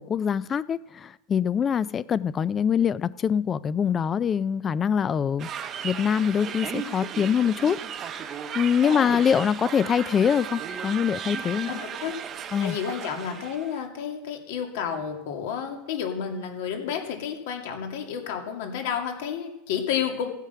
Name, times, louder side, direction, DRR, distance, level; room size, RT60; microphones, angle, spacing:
voice 1, 0.0-7.8 8.0-11.7 12.5-12.8, left 7 dB, 20° left, 0.4 m, -24 dB
sound 1, 5.4-13.8, right 8 dB, 30° right, 0.8 m, -35 dB
voice 2, 8.8-9.2 11.6-12.1 12.6-20.3, left 8 dB, 70° left, 2.5 m, -31 dB
16.0 x 8.2 x 5.7 m
supercardioid pair, 145°, 0 cm